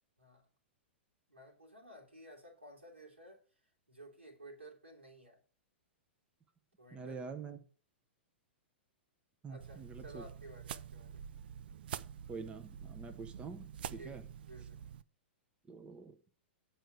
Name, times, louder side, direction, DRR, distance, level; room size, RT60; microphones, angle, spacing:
voice 1, 0.2-0.5 1.3-3.4 3.9-5.4 6.8-7.7 9.5-11.3 13.9-14.8, right 1 dB, 85° right, 3.2 m, -55 dB
voice 2, 6.9-7.6 9.4-10.2 12.3-14.2 15.7-16.2, right 5 dB, 15° right, 1.0 m, -46 dB
sound 1, 9.6-15.0, right 9 dB, 55° right, 0.5 m, -47 dB
9.0 x 4.8 x 6.5 m
figure-of-eight pair, 105°, 6 cm